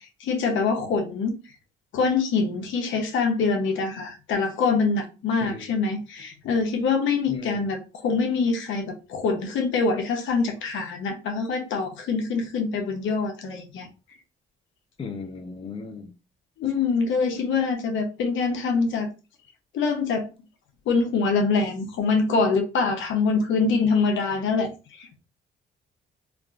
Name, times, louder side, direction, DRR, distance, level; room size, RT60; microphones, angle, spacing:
voice 1, 0.2-1.3 1.9-13.9 16.6-19.1 19.7-20.3 20.9-24.7 25.0-25.2, left 4 dB, 80° left, 0.8 m, -24 dB
voice 2, 5.4-5.8 7.3-7.7 15.0-16.1, left 4 dB, 25° left, 0.6 m, -36 dB
3.4 x 2.4 x 2.4 m
cardioid pair, 90°, 20 cm